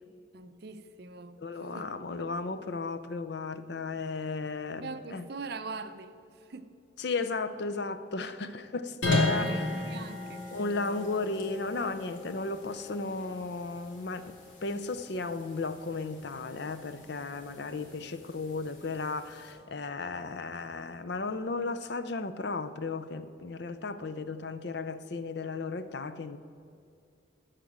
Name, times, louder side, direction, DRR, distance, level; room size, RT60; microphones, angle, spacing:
voice 1, 0.3-1.9 4.8-6.7 9.1-10.4, right 4 dB, 50° right, 10 dB, 0.6 m, -42 dB
voice 2, 1.4-5.3 7.0-9.7 10.5-14.4 14.6-26.4, left 3 dB, 55° left, 11 dB, 0.5 m, -35 dB
sound 1, 9.0-19.5, left 2 dB, 70° left, 2.6 m, -36 dB
13.0 x 5.1 x 8.6 m, 2.4 s
head